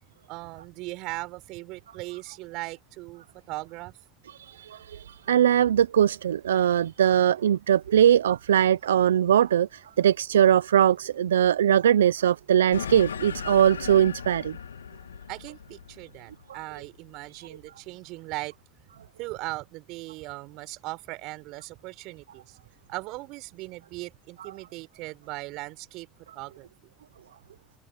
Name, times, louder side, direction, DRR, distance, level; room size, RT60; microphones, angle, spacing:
voice 1, 0.3-3.9 15.3-18.5 19.2-22.6 22.9-26.1 26.4-26.7, right 21 dB, 65° right, 5.5 m, -38 dB
voice 2, 4.4-14.6, right 10 dB, 85° right, 0.6 m, -21 dB
sound 1, 12.7-17.5, left 7 dB, 90° left, 1.9 m, -38 dB
hypercardioid pair, 60°, 0 cm